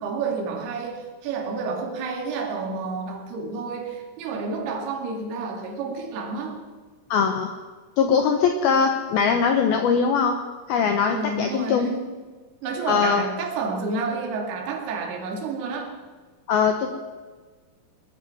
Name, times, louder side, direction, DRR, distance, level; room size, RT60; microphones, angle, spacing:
voice 1, 0.0-6.6 11.1-12.2 12.6-15.9, right 4 dB, 60° right, 1 dB, 4.0 m, -30 dB
voice 2, 7.1-7.5 8.0-10.4 10.7-11.9 12.9-13.2 16.5-17.0, left 6 dB, 85° left, 5 dB, 2.1 m, -21 dB
19.5 x 12.5 x 5.7 m, 1.4 s
omnidirectional pair, 5.8 m